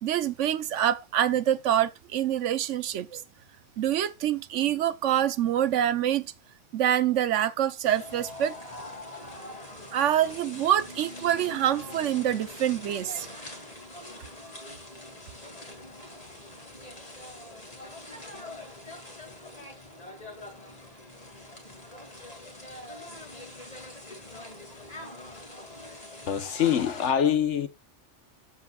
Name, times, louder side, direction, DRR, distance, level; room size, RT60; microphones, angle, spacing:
voice 1, 0.0-3.2 3.8-6.3 6.7-8.5 9.9-13.3, right 10 dB, 85° right, 1.0 m, -26 dB
sound 1, 7.8-27.1, left 1 dB, 30° left, 2.3 m, -44 dB
voice 2, 26.3-27.7, left 9 dB, 70° left, 1.2 m, -24 dB
12.5 x 7.3 x 2.3 m
omnidirectional pair, 1.2 m